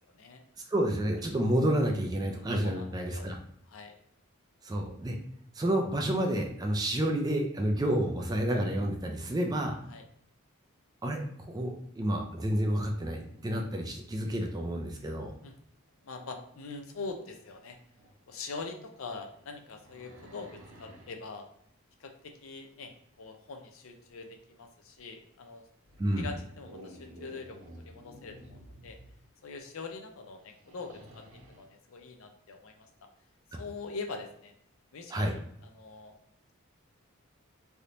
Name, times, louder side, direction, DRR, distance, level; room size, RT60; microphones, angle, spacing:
voice 1, 0.7-3.4 4.6-5.1 5.5-9.8 11.0-11.2 11.5-15.3 26.0-26.3 35.1-35.3, right 1 dB, 20° right, 2 dB, 0.3 m, -29 dB
voice 2, 2.6-3.3 3.7-4.0 9.9-10.0 13.5-13.7 15.4-15.5 16.0-17.8 18.3-20.5 20.8-21.5 22.0-25.6 26.2-29.0 29.4-32.9 33.5-34.5 34.9-35.4 35.6-36.1, left 4 dB, 70° left, 5 dB, 0.5 m, -43 dB
sound 1, 12.4-14.1 17.0-17.1 17.9-18.2 18.8-21.2 25.0-25.1 25.8-29.3 30.4-31.7, equal, 70° right, 0.6 m, -53 dB
3.4 x 2.8 x 2.5 m, 0.70 s
head